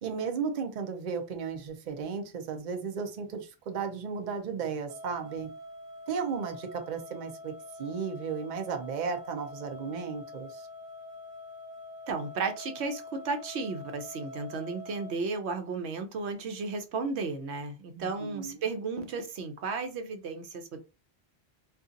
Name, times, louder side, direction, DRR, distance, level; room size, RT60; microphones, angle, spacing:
voice 1, 0.0-5.5 6.1-7.5 7.8-10.7 18.0-18.6, right 6 dB, 50° right, 5 dB, 0.7 m, -34 dB
sound 1, 4.9-15.1, left 2 dB, 35° left, 0.6 m, -45 dB
voice 2, 12.1-20.8, right 4 dB, 85° right, 7 dB, 1.0 m, -34 dB
2.7 x 2.4 x 3.7 m, 0.29 s
omnidirectional pair, 1.1 m